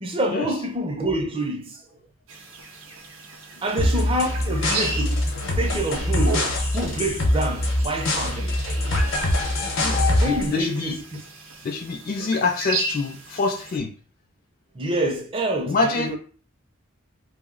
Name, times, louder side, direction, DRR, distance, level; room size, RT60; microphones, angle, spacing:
voice 1, 0.0-1.8 3.6-5.2 5.5-8.5 10.2-11.2 14.7-16.2, right 1 dB, 25° right, 0.4 m, -27 dB
sound 1, 2.3-13.8, right 3 dB, 80° right, 0.5 m, -35 dB
sound 2, 3.8-10.5, left 1 dB, 75° left, 0.7 m, -23 dB
voice 2, 9.8-11.0 11.6-13.9 15.7-16.2, left 3 dB, 45° left, 0.3 m, -26 dB
2.6 x 2.0 x 3.7 m
head